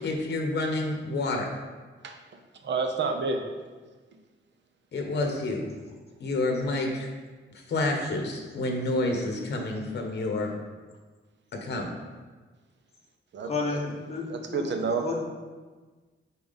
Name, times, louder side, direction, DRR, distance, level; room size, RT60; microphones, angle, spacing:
voice 1, 0.0-1.5 4.9-5.6 6.2-7.1 7.5-10.5 11.6-11.9, left 2 dB, 55° left, 1.2 m, -29 dB
voice 2, 2.6-3.4 13.3-13.8 14.3-15.0, right 4 dB, 60° right, 0.8 m, -29 dB
voice 3, 13.4-14.3 14.5-14.7 15.0-15.3, left 3 dB, 30° left, 1.2 m, -31 dB
6.9 x 4.6 x 4.1 m
wide cardioid pair, 170°, 21 cm